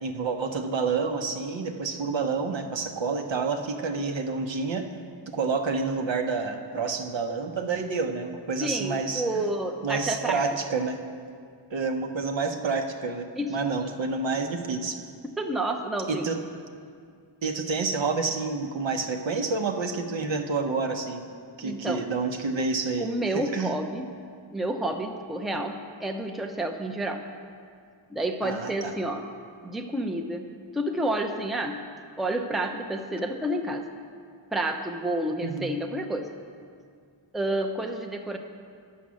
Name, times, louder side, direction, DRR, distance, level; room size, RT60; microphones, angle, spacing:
voice 1, 0.0-4.9 5.3-9.4 9.8-11.0 11.7-15.0 16.1-16.4 17.4-21.2 21.6-23.1 23.3-23.7 28.4-28.9 35.4-35.7, right 4 dB, 65° right, 5 dB, 0.9 m, -29 dB
voice 2, 8.6-10.5 13.4-13.9 15.4-16.3 21.6-22.1 23.0-24.1 24.5-27.2 28.1-29.3 29.6-30.5 30.7-31.8 32.2-33.9 34.5-36.3 37.3-38.4, right 1 dB, ahead, 4 dB, 0.5 m, -30 dB
9.4 x 7.1 x 6.3 m, 2.2 s
wide cardioid pair, 85°, 48 cm